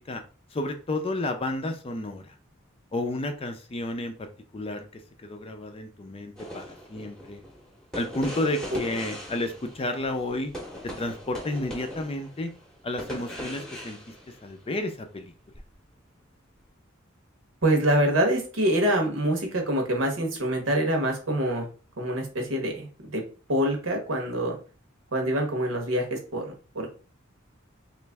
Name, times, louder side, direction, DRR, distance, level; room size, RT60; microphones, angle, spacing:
voice 1, 0.5-2.4 2.9-4.3 4.5-4.9 5.2-7.4 7.9-10.5 11.0-12.5 12.8-14.1 14.4-15.3, left 2 dB, 30° left, 6 dB, 0.5 m, -31 dB
sound 1, 6.4-14.8 15.5-15.7, equal, 5° left, 0.8 m, -40 dB
voice 2, 17.6-21.7 22.0-23.2 23.5-24.6 25.1-26.9, right 1 dB, 75° right, 2 dB, 1.0 m, -25 dB
3.1 x 2.5 x 3.4 m, 0.37 s
head